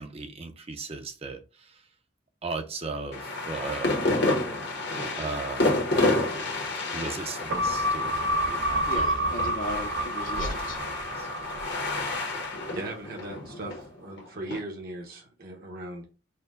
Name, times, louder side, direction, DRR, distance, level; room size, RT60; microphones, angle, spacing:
voice 1, 0.0-1.4 2.4-3.9 5.1-5.7 6.9-9.2 10.4-11.3, right 3 dB, 30° right, 0.6 m, -37 dB
sound 1, 3.1-14.6, left 2 dB, 60° left, 1.1 m, -30 dB
sound 2, 7.5-12.2 12.6-12.7, right 1 dB, 75° right, 0.5 m, -29 dB
voice 2, 8.9-10.8, left 2 dB, 45° left, 0.6 m, -37 dB
voice 3, 12.7-16.0, right 2 dB, 55° right, 1.0 m, -38 dB
4.3 x 2.2 x 3.7 m
head